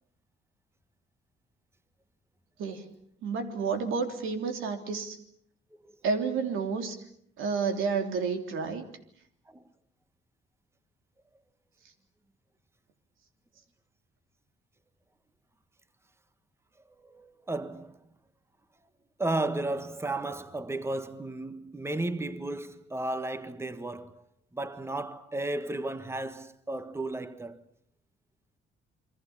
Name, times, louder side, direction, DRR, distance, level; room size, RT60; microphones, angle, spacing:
voice 1, 3.2-5.2 6.0-7.0 7.4-8.9, right 5 dB, 85° right, 3.3 m, -30 dB
voice 2, 17.0-18.0 19.2-24.2 24.5-27.6, right 2 dB, 15° right, 1.4 m, -34 dB
28.0 x 23.5 x 7.3 m
cardioid pair, 90°, 20 cm